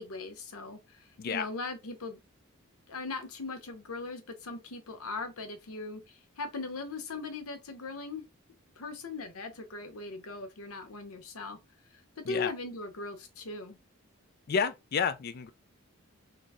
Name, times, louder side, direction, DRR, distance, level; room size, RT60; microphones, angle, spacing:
voice 1, 0.0-2.2 2.9-8.3 8.8-11.6 12.2-13.8, left 3 dB, 80° left, 0.8 m, -39 dB
voice 2, 14.5-15.5, left 6 dB, 45° left, 0.3 m, -30 dB
3.7 x 2.0 x 3.5 m
head